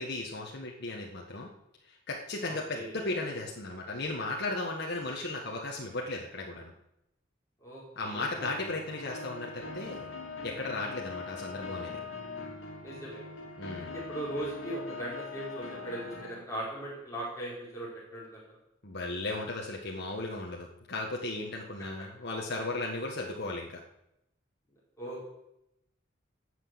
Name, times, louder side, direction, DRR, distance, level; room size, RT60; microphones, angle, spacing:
voice 1, 0.0-1.5 1.8-6.7 7.9-10.1 10.4-12.0 13.6-13.9 18.8-23.8, left 2 dB, 60° left, -1 dB, 1.7 m, -36 dB
voice 2, 2.4-2.9 7.6-8.3 12.8-13.2 13.8-18.4 25.0-25.2, right 1 dB, 15° left, -7 dB, 5.2 m, -39 dB
sound 1, 8.4-16.4, left 4 dB, 75° left, 2.7 m, -42 dB
19.0 x 6.4 x 8.0 m, 0.85 s
head